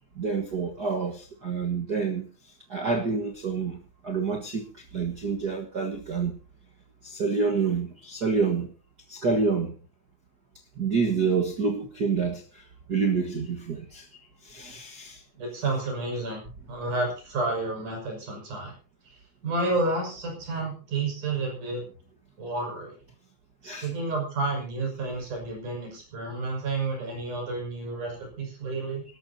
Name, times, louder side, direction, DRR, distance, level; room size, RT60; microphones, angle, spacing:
voice 1, 0.2-2.2 2.7-4.7 4.9-6.3 7.0-8.7 9.1-9.8 10.8-12.4 12.9-14.1 14.4-15.2 23.6-23.9, right 5 dB, 85° right, 0.8 m, -27 dB
voice 2, 15.3-16.4 16.7-18.7 19.1-19.2 19.4-21.8 22.4-23.0 23.6-29.0, right 2 dB, 55° right, 7.2 m, -30 dB
26.0 x 13.0 x 2.8 m
omnidirectional pair, 4.4 m